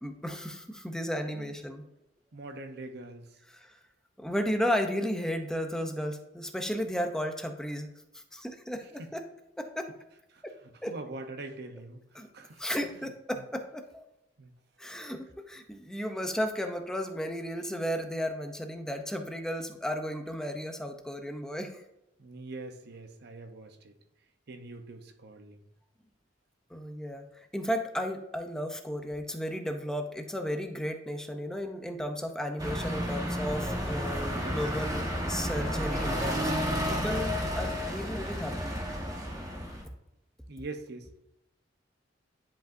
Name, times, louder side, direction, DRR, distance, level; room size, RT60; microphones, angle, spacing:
voice 1, 0.0-1.8 3.6-3.7 4.2-7.9 8.3-9.3 9.6-9.9 10.4-10.5 10.8-11.0 12.2-12.3 12.6-14.0 14.8-21.7 26.7-27.2 27.5-39.0, equal, 5° left, 0.6 m, -34 dB
voice 2, 2.3-3.4 9.0-9.1 10.3-12.6 12.9-13.1 14.4-14.5 22.2-24.0 24.5-25.7 34.3-34.7 40.5-41.2, right 2 dB, 60° right, 0.7 m, -43 dB
sound 1, 32.6-39.8, equal, 20° right, 1.1 m, -31 dB
10.5 x 5.0 x 2.6 m
head